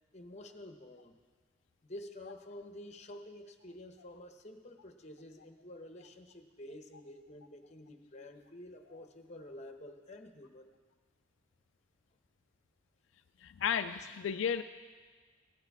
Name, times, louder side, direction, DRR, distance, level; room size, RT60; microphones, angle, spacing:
voice 1, 0.1-1.2 1.8-10.7, left 1 dB, 35° left, 5 dB, 1.0 m, -49 dB
voice 2, 13.4-14.6, left 7 dB, 70° left, 8 dB, 0.4 m, -33 dB
16.5 x 9.7 x 4.8 m, 1.5 s
head